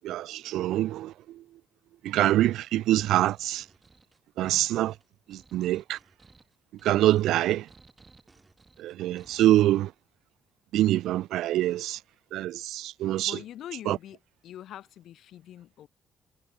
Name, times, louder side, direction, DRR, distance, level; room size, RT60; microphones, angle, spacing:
voice 1, 0.0-1.1 2.1-3.6 4.4-4.9 5.5-6.0 6.9-7.6 8.8-9.9 10.7-12.0 12.3-13.3 13.9-14.0, right 14 dB, 85° right, 0.4 m, -24 dB
sound 1, 2.9-9.6, right 3 dB, 25° right, 7.6 m, -58 dB
voice 2, 13.2-15.9, left 11 dB, 75° left, 4.0 m, -43 dB
cardioid pair, 90°, 0 cm